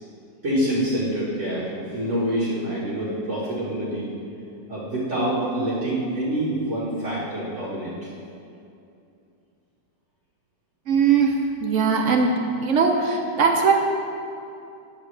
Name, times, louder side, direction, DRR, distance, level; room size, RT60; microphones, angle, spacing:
voice 1, 0.4-4.1 4.7-8.1, right 1 dB, 45° right, -10 dB, 1.8 m, -26 dB
voice 2, 10.9-12.3 12.6-13.0 13.4-13.7, right 6 dB, 65° right, 2 dB, 0.8 m, -19 dB
10.0 x 7.6 x 3.2 m, 2.6 s
omnidirectional pair, 1.9 m